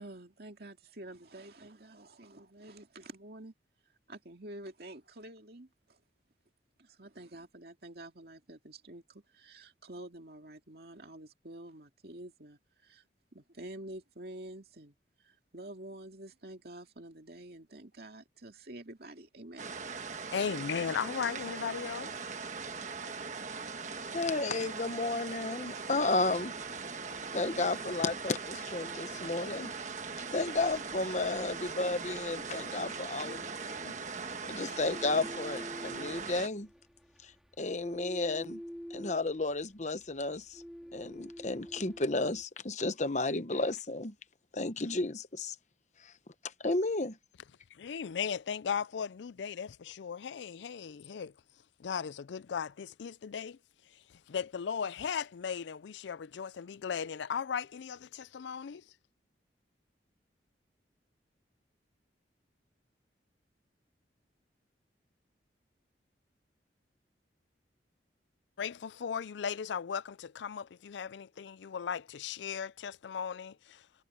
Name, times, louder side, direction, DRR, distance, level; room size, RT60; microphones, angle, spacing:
voice 1, 0.0-3.5 4.1-6.0 6.8-13.0 13.3-15.0 15.2-19.7, right 1 dB, 60° right, 2.4 m, -48 dB
sound 1, 19.6-36.5, right 5 dB, 40° right, 1.4 m, -40 dB
voice 2, 20.3-22.2 47.8-51.3 51.8-53.6 54.3-58.8 68.6-73.8, left 7 dB, 80° left, 0.4 m, -37 dB
voice 3, 24.1-26.5 27.3-29.7 30.3-33.9 34.5-36.7 37.2-37.3 37.6-38.6 38.9-40.6 40.9-44.1 44.5-45.5 46.0-46.1 46.6-47.2, left 2 dB, 40° left, 1.0 m, -33 dB
sound 2, 25.8-42.4, equal, ahead, 4.2 m, -50 dB
head